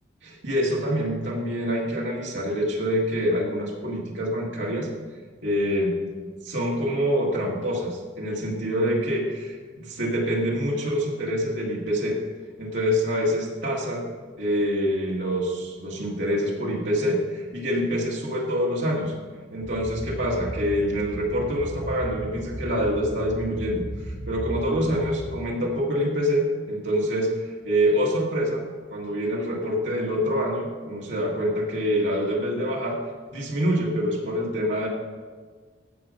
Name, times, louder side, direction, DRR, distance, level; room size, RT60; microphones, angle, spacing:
voice 1, 0.2-4.9 5.4-6.1 6.4-12.2 12.6-14.1 14.4-19.1 19.5-28.6 28.9-33.0 33.3-34.9, equal, 80° right, -3 dB, 1.9 m, -26 dB
sound 1, 19.6-25.3, right 1 dB, 50° right, 2.0 m, -35 dB
15.0 x 5.0 x 5.2 m, 1.5 s
head